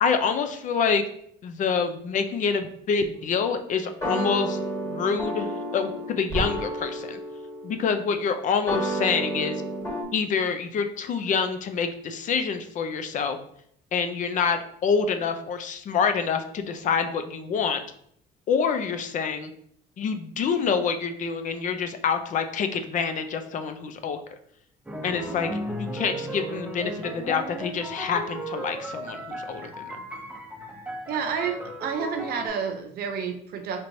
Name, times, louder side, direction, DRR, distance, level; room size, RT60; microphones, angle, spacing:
voice 1, 0.0-1.0 1.4-4.6 4.9-7.2 7.6-9.6 10.1-13.4 13.9-17.8 18.5-19.5 20.0-24.2 25.0-25.5 25.8-29.9, left 6 dB, 50° left, 8 dB, 0.5 m, -26 dB
sound 1, 3.1-10.0, right 1 dB, 20° left, 1.5 m, -31 dB
sound 2, 24.9-32.5, right 1 dB, 5° right, 0.7 m, -35 dB
voice 2, 31.1-33.8, right 6 dB, 65° right, 6 dB, 0.5 m, -30 dB
4.4 x 3.1 x 2.6 m, 0.69 s
cardioid pair, 110°, 17 cm